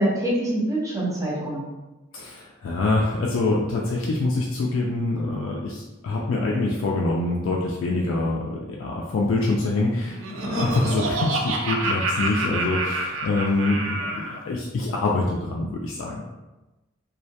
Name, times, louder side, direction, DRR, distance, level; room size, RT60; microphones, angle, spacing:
voice 1, 0.0-1.6 10.4-10.7 11.8-11.9 14.0-14.1, right 1 dB, 15° right, -6 dB, 0.7 m, -25 dB
voice 2, 2.1-16.3, left 2 dB, 75° left, -2 dB, 0.3 m, -25 dB
Laughter, 9.9-14.4, right 2 dB, 70° right, 0.3 m, -28 dB
2.3 x 2.1 x 2.7 m, 1.1 s
head